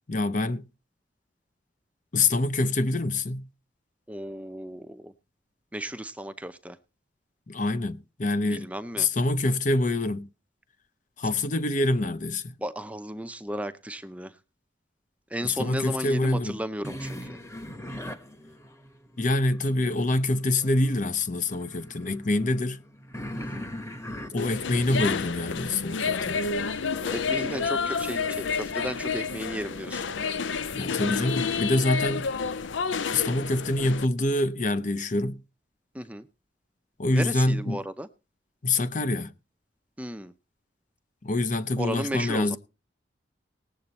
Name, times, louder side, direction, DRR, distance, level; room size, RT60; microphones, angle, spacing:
voice 1, 0.1-0.6 2.1-3.5 7.5-8.7 9.0-10.3 11.2-12.6 15.4-16.6 19.2-22.8 24.3-26.4 30.7-32.3 33.1-35.4 37.0-37.8 38.6-39.3 41.2-42.6, left 2 dB, 40° left, 0.7 m, -26 dB
voice 2, 4.1-5.1 5.7-6.8 8.5-9.1 12.6-14.4 15.3-17.4 23.4-23.7 27.0-30.3 35.9-36.3 37.1-38.1 40.0-40.3 41.8-42.6, equal, 5° right, 0.6 m, -34 dB
sound 1, 16.8-20.1 20.6-30.5, equal, 15° left, 1.1 m, -43 dB
sound 2, 24.4-34.1, left 5 dB, 85° left, 0.7 m, -30 dB
19.0 x 7.8 x 4.1 m
head